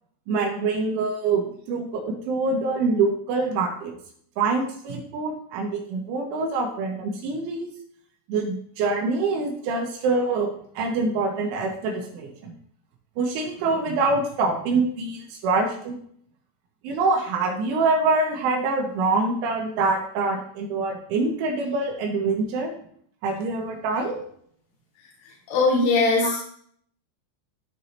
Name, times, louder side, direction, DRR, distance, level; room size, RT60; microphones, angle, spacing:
voice 1, 0.3-3.9 4.4-7.7 8.3-12.5 13.2-16.0 16.8-22.7 23.2-24.2, right 3 dB, 75° right, 1 dB, 3.3 m, -25 dB
voice 2, 25.0-26.4, left 3 dB, 75° left, -5 dB, 4.0 m, -22 dB
14.0 x 4.8 x 2.8 m, 0.63 s
omnidirectional pair, 5.9 m